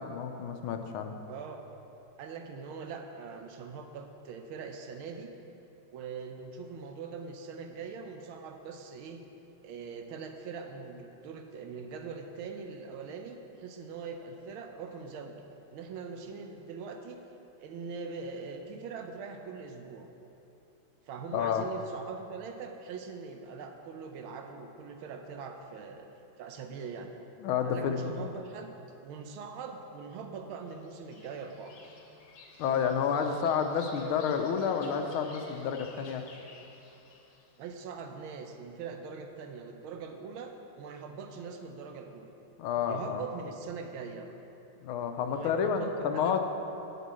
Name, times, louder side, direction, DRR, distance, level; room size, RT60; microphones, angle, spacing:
voice 1, 0.0-1.1 21.3-21.6 27.4-28.3 32.6-36.2 42.6-43.2 44.8-46.4, left 7 dB, 85° left, 6 dB, 1.5 m, -30 dB
voice 2, 1.3-1.6 2.2-5.3 5.9-9.3 9.6-15.4 15.7-17.2 17.6-20.1 21.1-26.1 26.4-27.1 27.6-28.7 29.0-31.7 37.6-42.3 42.9-44.4 45.3-46.4, right 5 dB, 80° right, 5 dB, 1.5 m, -42 dB
Bird vocalization bird call bird song, 30.8-37.5, left 4 dB, 70° left, 1.7 m, -49 dB
8.2 x 5.4 x 7.5 m, 2.9 s
omnidirectional pair, 2.3 m